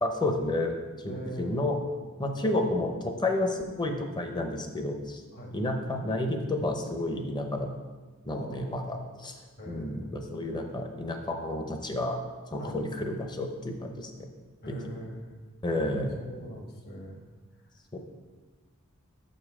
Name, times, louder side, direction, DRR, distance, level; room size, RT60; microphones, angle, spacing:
voice 1, 0.0-1.8 2.2-5.2 5.5-7.7 8.2-9.4 9.7-12.2 12.5-14.3 14.7-15.1 15.6-16.2 17.9-18.0, left 1 dB, 20° left, 5 dB, 0.7 m, -31 dB
voice 2, 1.1-1.7 2.4-2.5 5.3-5.5 8.3-8.8 9.6-10.2 12.6-12.7 14.6-15.3 15.7-17.2, right 1 dB, 50° left, 2 dB, 1.2 m, -42 dB
6.6 x 5.3 x 4.8 m, 1.4 s
head